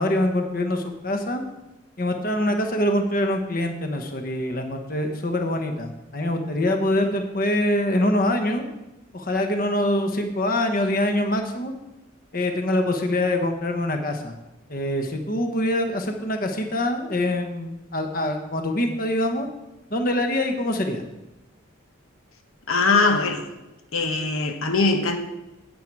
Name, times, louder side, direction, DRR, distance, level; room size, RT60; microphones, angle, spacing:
voice 1, 0.0-1.4 2.0-8.7 9.1-11.7 12.3-14.4 14.7-19.5 19.9-21.0, left 1 dB, 45° left, 1.1 m, -24 dB
voice 2, 22.7-23.5 23.9-25.2, left 3 dB, 85° left, 1.0 m, -21 dB
10.0 x 8.9 x 4.7 m
head